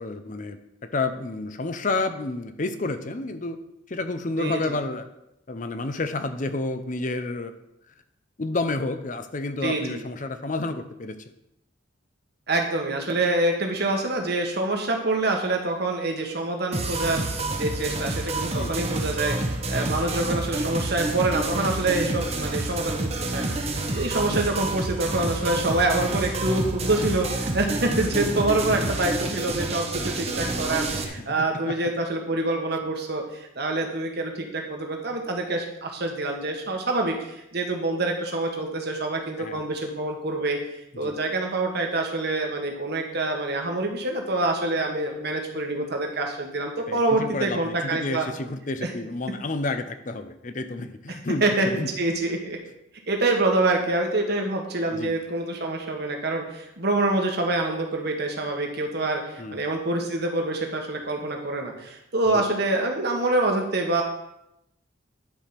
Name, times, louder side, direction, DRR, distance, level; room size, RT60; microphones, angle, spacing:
voice 1, 0.0-3.6 3.9-5.1 5.5-7.5 8.4-11.2 18.5-19.0 28.0-28.9 31.1-31.9 39.4-39.6 40.9-41.2 46.9-51.9 54.9-55.1 59.4-59.6 62.3-62.4, left 2 dB, 40° left, 9 dB, 0.7 m, -30 dB
voice 2, 4.4-4.8 9.6-10.0 12.5-17.2 17.6-40.6 41.0-48.3 48.8-48.9 51.1-52.6 53.1-64.0, right 2 dB, 55° right, 2 dB, 1.5 m, -26 dB
sound 1, 16.7-31.0, right 2 dB, 30° right, 1.0 m, -28 dB
10.5 x 5.0 x 5.8 m, 0.84 s
head